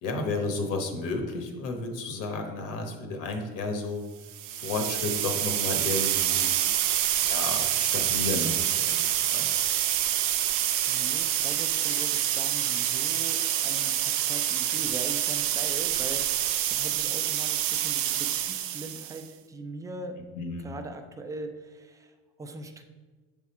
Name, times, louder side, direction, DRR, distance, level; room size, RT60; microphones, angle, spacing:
voice 1, 0.0-4.0 4.6-6.5 7.2-9.5 20.4-20.7, left 3 dB, 60° left, 4 dB, 1.1 m, -32 dB
sound 1, 4.3-19.2, right 12 dB, 90° right, 0.6 m, -27 dB
voice 2, 10.1-10.5 10.9-20.2 20.6-22.8, right 2 dB, 10° right, 6 dB, 0.3 m, -41 dB
7.1 x 3.6 x 4.2 m, 1.3 s
cardioid pair, 140°, 34 cm